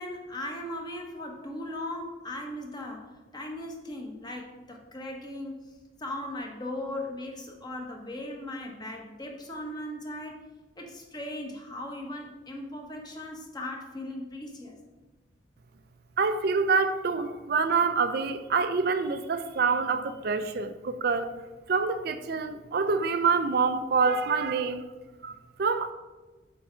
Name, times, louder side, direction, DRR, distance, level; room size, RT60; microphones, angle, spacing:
voice 1, 0.0-5.7 6.0-10.4 10.8-14.8, left 1 dB, 25° left, 2 dB, 1.1 m, -38 dB
voice 2, 16.2-21.3 21.7-24.8 25.2-25.3 25.6-25.9, right 4 dB, 60° right, 10 dB, 0.5 m, -26 dB
8.6 x 3.5 x 5.7 m, 1.2 s
head